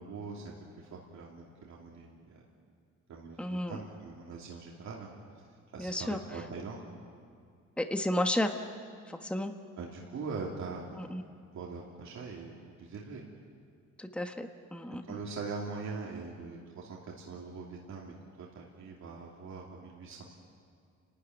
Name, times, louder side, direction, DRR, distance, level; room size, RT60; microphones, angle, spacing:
voice 1, 0.0-2.4 3.1-5.1 5.7-6.8 9.8-11.2 11.5-13.2 15.1-20.2, right 4 dB, 65° right, -3 dB, 2.9 m, -42 dB
voice 2, 3.4-3.8 5.8-6.2 7.8-8.6 9.1-9.5 11.0-11.2 14.0-15.2, left 1 dB, 5° left, 5 dB, 1.3 m, -32 dB
29.5 x 13.5 x 9.5 m, 2.2 s
cardioid pair, 90°, 30 cm